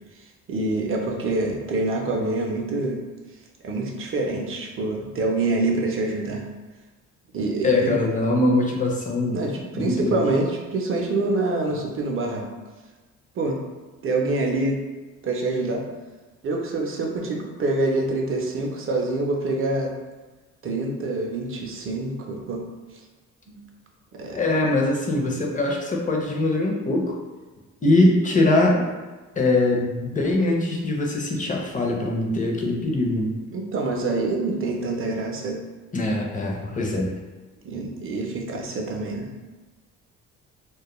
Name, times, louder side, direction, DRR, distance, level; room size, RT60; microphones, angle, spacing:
voice 1, 0.5-3.0 3.6-6.4 7.3-7.9 9.3-12.4 13.4-13.6 14.0-14.8 15.2-15.8 16.4-19.9 20.6-22.6 23.5-23.6 24.1-24.4 33.5-35.6 37.6-39.3, right 2 dB, 45° right, 1 dB, 0.5 m, -26 dB
voice 2, 7.6-9.4 9.7-10.2 24.3-27.2 27.8-28.9 29.4-33.3 35.9-37.1, left 2 dB, 25° left, -1 dB, 0.5 m, -22 dB
2.2 x 2.1 x 2.9 m, 1.3 s
cardioid pair, 90°, 30 cm